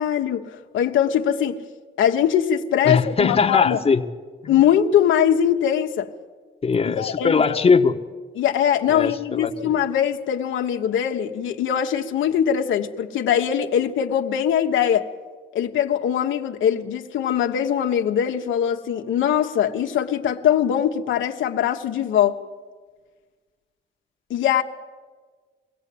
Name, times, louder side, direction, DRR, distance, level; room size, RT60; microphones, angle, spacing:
voice 1, 0.0-1.6 2.0-3.8 4.5-6.1 6.8-7.5 8.4-15.0 15.5-22.4 24.3-24.6, left 9 dB, 80° left, 4 dB, 1.2 m, -21 dB
voice 2, 2.8-4.0 4.4-4.5 6.6-8.0 8.9-9.7, left 5 dB, 30° left, 5 dB, 1.2 m, -20 dB
23.0 x 16.5 x 8.6 m, 1.5 s
cardioid pair, 90°, 20 cm